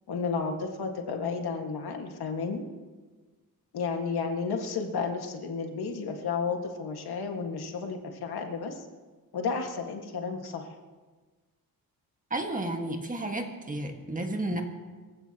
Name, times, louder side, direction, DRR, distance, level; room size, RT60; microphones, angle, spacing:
voice 1, 0.1-2.6 3.7-8.8 9.3-10.7, left 5 dB, 85° left, 3 dB, 1.8 m, -32 dB
voice 2, 12.3-14.6, right 2 dB, 20° right, 3 dB, 1.7 m, -32 dB
25.5 x 15.5 x 3.0 m, 1.4 s
wide cardioid pair, 150°, 37 cm